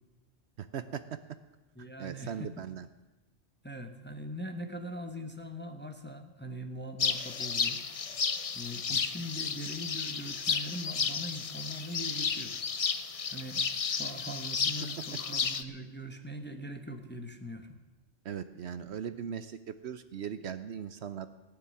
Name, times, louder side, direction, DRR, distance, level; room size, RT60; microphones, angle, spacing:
voice 1, 0.6-1.0 2.0-2.9 8.9-9.0 18.2-21.3, right 8 dB, 65° right, 12 dB, 0.9 m, -39 dB
voice 2, 1.8-2.6 3.6-7.8 8.5-12.5 13.3-17.8, equal, 10° left, 5 dB, 1.0 m, -41 dB
sound 1, 7.0-15.6, left 6 dB, 40° left, 0.5 m, -33 dB
17.0 x 7.0 x 9.8 m, 1.1 s
omnidirectional pair, 1.3 m